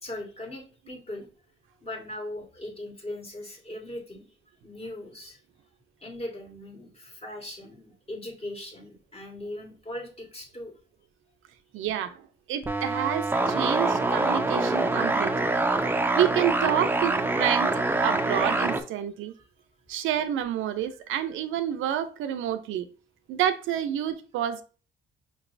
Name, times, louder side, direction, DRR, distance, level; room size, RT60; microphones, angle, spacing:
voice 1, 0.0-1.3 1.8-4.2 4.6-5.4 6.0-10.7, left 1 dB, 30° left, 1.6 m, -39 dB
voice 2, 11.7-12.2 12.5-15.5 16.1-17.7 18.0-19.3 19.9-22.8 23.3-24.6, right 11 dB, 85° right, 0.5 m, -28 dB
sound 1, 12.6-18.8, right 2 dB, 10° right, 0.5 m, -25 dB
5.2 x 3.0 x 2.5 m
cardioid pair, 90°, 20 cm